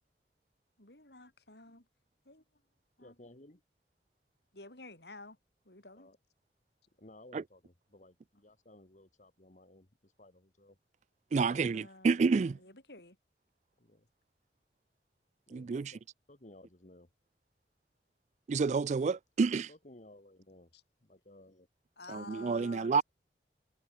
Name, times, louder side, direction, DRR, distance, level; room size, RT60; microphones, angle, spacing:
voice 1, 0.8-1.9 2.3-2.4 3.0-3.2 4.5-5.4 5.7-6.1 11.4-13.2 20.7-20.8 22.0-23.0, left 2 dB, 70° left, 7.1 m, -51 dB
voice 2, 3.0-3.6 5.9-6.2 7.0-10.8 13.8-14.1 15.5-16.0 16.3-17.1 19.4-20.7 21.1-21.7, left 1 dB, 45° left, 1.9 m, -57 dB
voice 3, 11.3-12.6 15.5-16.0 18.5-19.7 22.1-23.0, right 4 dB, 40° right, 0.3 m, -29 dB
head